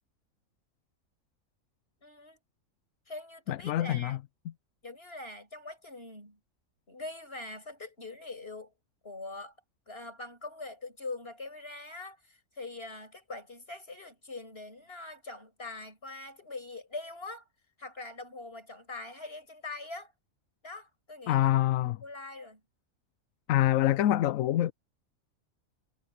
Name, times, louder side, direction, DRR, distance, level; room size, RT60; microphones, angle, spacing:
voice 1, 2.0-2.4 3.1-4.2 4.8-6.4 6.9-8.7 9.0-9.5 9.9-17.5 17.8-20.1 20.6-21.5 21.8-22.6, left 2 dB, 45° left, 7.1 m, -43 dB
voice 2, 3.5-4.2 21.3-22.0 23.5-24.7, left 13 dB, 80° left, 1.0 m, -25 dB
omnidirectional pair, 1.4 m